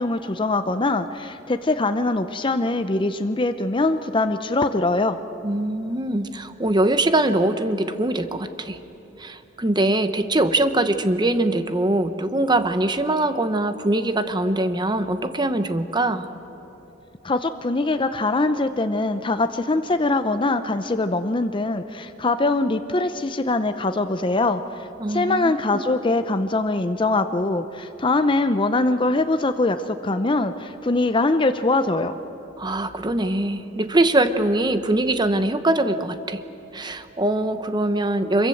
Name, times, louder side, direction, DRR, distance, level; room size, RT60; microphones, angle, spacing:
voice 1, 0.0-5.2 17.2-24.6 25.1-32.1, left 2 dB, 25° left, 9 dB, 0.7 m, -22 dB
voice 2, 5.4-8.8 9.2-16.3 25.0-25.5 32.6-36.4 36.7-38.5, right 1 dB, 25° right, 10 dB, 1.0 m, -22 dB
25.0 x 22.5 x 7.8 m, 3.0 s
head